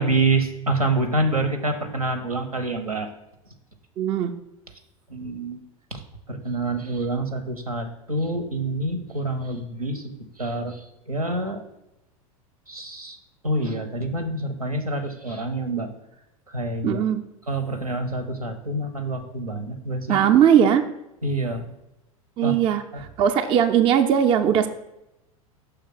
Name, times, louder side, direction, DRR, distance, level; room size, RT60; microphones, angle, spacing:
voice 1, 0.0-3.1 5.1-5.6 5.9-6.0 6.3-10.1 10.4-11.6 12.7-13.2 13.4-15.9 16.5-17.0 17.5-20.2 21.2-21.6 22.4-22.5 22.9-23.0, right 2 dB, 85° right, 7 dB, 0.8 m, -27 dB
voice 2, 4.0-4.3 16.8-17.2 20.1-20.9 22.4-22.8 23.2-24.7, right 9 dB, 30° right, 7 dB, 0.4 m, -19 dB
5.8 x 3.4 x 5.6 m, 0.88 s
figure-of-eight pair, 85°, 18 cm